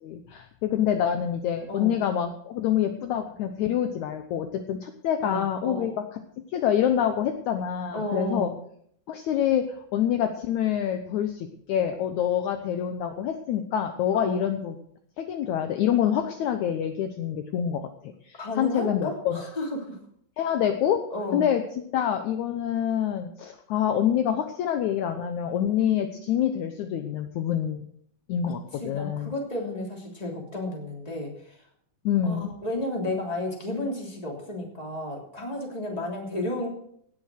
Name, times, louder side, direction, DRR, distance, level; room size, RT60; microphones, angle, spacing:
voice 1, 0.0-6.0 6.5-8.5 9.1-14.8 15.2-17.9 18.3-19.4 20.4-21.0 21.3-27.9 28.3-29.3 32.1-32.5, left 9 dB, 70° left, 7 dB, 2.0 m, -26 dB
voice 2, 1.7-2.0 5.2-6.0 7.9-8.6 14.1-14.5 18.4-20.0 21.1-21.5 28.8-31.6 32.2-36.7, left 1 dB, 10° left, -1 dB, 2.9 m, -32 dB
17.5 x 7.0 x 6.3 m, 0.66 s
omnidirectional pair, 3.9 m